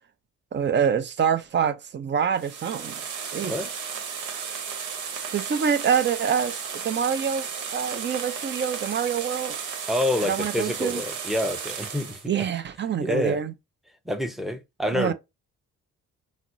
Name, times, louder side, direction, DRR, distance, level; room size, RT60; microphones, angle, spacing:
voice 1, 0.5-3.0 3.3-3.6 5.3-9.6 10.2-11.0 12.3-13.5 14.9-15.1, right 7 dB, 40° right, 0.6 m, -26 dB
sound 1, 2.3-12.3, right 6 dB, 85° right, 1.0 m, -34 dB
voice 2, 9.9-12.2 13.0-13.4 14.1-15.1, left 1 dB, ahead, 0.7 m, -27 dB
5.8 x 2.0 x 2.6 m
cardioid pair, 90°, 30 cm